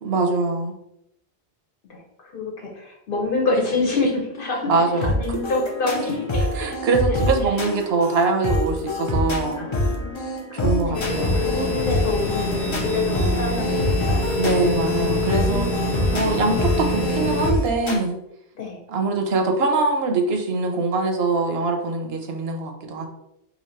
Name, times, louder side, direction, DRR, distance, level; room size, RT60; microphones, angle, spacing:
voice 1, 0.0-0.7 4.7-5.4 6.5-9.7 10.5-11.4 14.4-15.7 16.1-18.2 18.9-23.1, right 3 dB, 80° right, 4 dB, 0.9 m, -23 dB
voice 2, 1.9-6.8 7.1-7.2 9.6-14.4 15.4-16.3 18.5-18.8, left 3 dB, 65° left, 0 dB, 0.9 m, -27 dB
sound 1, 5.0-18.0, left 1 dB, 35° left, 0.5 m, -26 dB
sound 2, 10.9-17.5, left 2 dB, 85° left, 1.0 m, -25 dB
2.9 x 2.6 x 4.4 m, 0.79 s
omnidirectional pair, 1.0 m